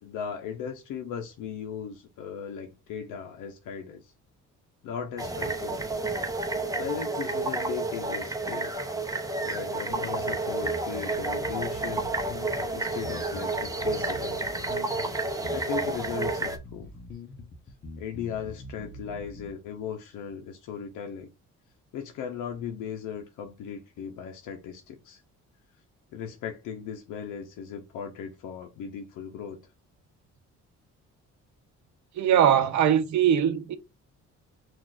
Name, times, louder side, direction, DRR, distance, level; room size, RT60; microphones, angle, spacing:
voice 1, 0.0-4.1 4.8-5.9 6.7-8.7 9.4-12.1 12.7-14.4 15.5-16.9 18.0-21.3 21.9-25.2 26.1-29.6, left 7 dB, 85° left, 0.7 m, -37 dB
sound 1, 5.2-16.6, right 2 dB, 10° right, 0.7 m, -30 dB
sound 2, 9.9-19.5, left 2 dB, 35° left, 0.9 m, -44 dB
voice 2, 32.1-33.8, right 9 dB, 70° right, 0.7 m, -21 dB
5.9 x 2.5 x 2.4 m
cardioid pair, 90°, 30 cm